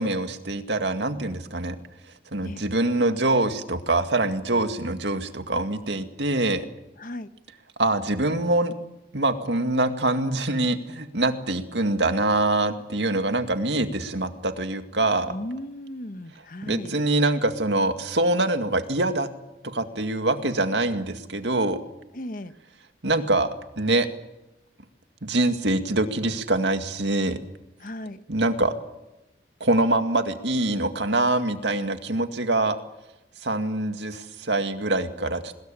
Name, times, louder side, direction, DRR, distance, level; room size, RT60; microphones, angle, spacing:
voice 1, 0.0-1.8 2.3-6.7 7.8-8.7 9.1-15.3 16.6-19.3 19.6-21.8 23.0-23.5 23.8-24.1 25.2-27.4 28.3-28.7 29.6-32.8 33.4-35.5, right 2 dB, 85° right, 7 dB, 2.2 m, -24 dB
voice 2, 7.0-7.3 15.3-16.9 22.1-22.5 27.8-28.2, left 1 dB, 50° left, 11 dB, 1.1 m, -36 dB
22.5 x 21.5 x 8.7 m, 0.95 s
head